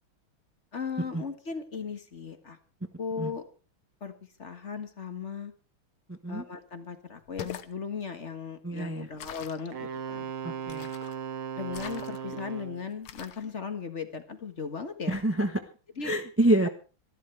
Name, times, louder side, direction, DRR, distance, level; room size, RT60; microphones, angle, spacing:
voice 1, 0.7-2.6 3.0-3.4 4.0-4.1 4.4-5.5 6.3-10.3 11.6-15.2 16.0-16.2, left 5 dB, 35° left, 8 dB, 1.7 m, -37 dB
voice 2, 6.1-6.4 8.6-9.1 10.4-10.9 15.1-15.5 16.0-16.7, right 1 dB, 15° right, 7 dB, 0.5 m, -27 dB
sound 1, 7.2-7.7 9.2-9.7 10.7-11.2 11.7-12.4 13.1-13.5, left 11 dB, 85° left, 2.0 m, -42 dB
Wind instrument woodwind instrument, 9.7-12.9, right 7 dB, 80° right, 2.6 m, -37 dB
26.0 x 12.0 x 3.4 m, 0.34 s
omnidirectional pair, 2.3 m